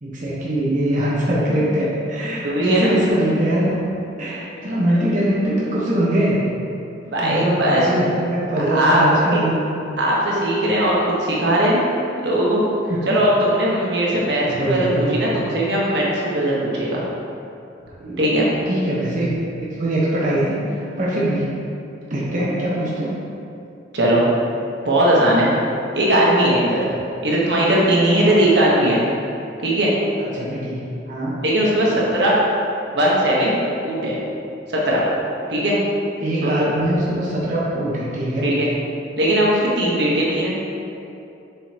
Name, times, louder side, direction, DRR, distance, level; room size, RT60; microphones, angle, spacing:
voice 1, 0.0-3.7 4.2-6.4 7.2-9.6 12.9-13.0 14.5-15.4 18.0-18.2 18.7-20.6 21.0-21.5 22.1-23.2 28.2-28.3 30.3-30.8 31.1-31.3 36.2-38.5, right 1 dB, 45° right, -7 dB, 1.1 m, -22 dB
voice 2, 2.4-2.9 4.9-5.0 7.0-7.8 8.5-9.0 9.3-9.4 10.0-11.8 12.2-12.6 13.1-14.4 14.7-17.0 18.2-18.5 23.9-24.2 24.8-25.5 25.9-26.8 27.2-29.0 29.6-29.9 31.4-32.3 32.9-33.5 33.8-34.2 34.8-35.0 35.5-35.8 36.4-36.7 38.4-38.7 39.2-40.6, right 1 dB, 65° right, -5 dB, 1.2 m, -19 dB
7.3 x 5.5 x 2.9 m, 2.7 s
head